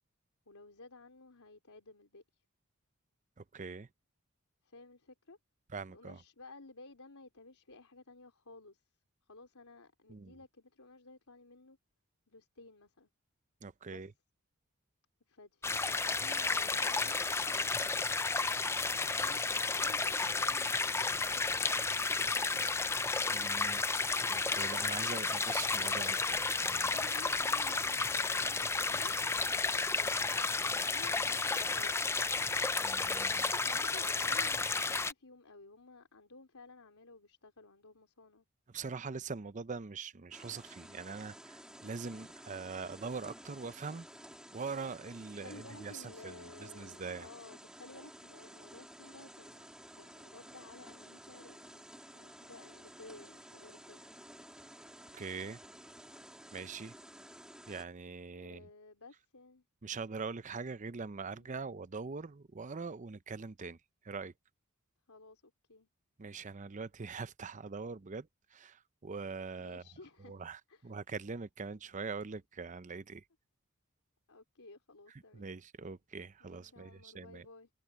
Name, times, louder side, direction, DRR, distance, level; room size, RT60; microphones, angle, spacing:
voice 1, 0.5-2.4 4.6-5.4 5.9-8.8 9.3-11.8 12.3-13.1 13.9-14.1 15.3-18.3 18.9-22.9 26.5-30.3 30.6-32.0 33.4-38.5 45.3-49.7 49.9-51.8 52.1-54.0 58.3-59.7 61.3-61.5 65.1-65.9 69.6-70.4 70.7-71.0 74.3-75.5 76.4-77.7, left 3 dB, 90° left, 3.7 m, -55 dB
voice 2, 3.4-3.9 5.7-6.2 10.1-10.3 13.6-14.1 23.3-23.9 24.3-26.9 32.8-33.5 38.7-44.1 44.5-47.3 55.1-55.6 56.5-56.9 57.7-58.7 59.8-63.8 64.0-64.3 66.2-69.8 70.2-73.2 75.3-77.5, right 4 dB, 35° right, 0.6 m, -43 dB
sound 1, 15.6-35.1, left 4 dB, 10° left, 0.4 m, -32 dB
sound 2, 40.3-57.8, right 1 dB, 5° right, 2.4 m, -53 dB
head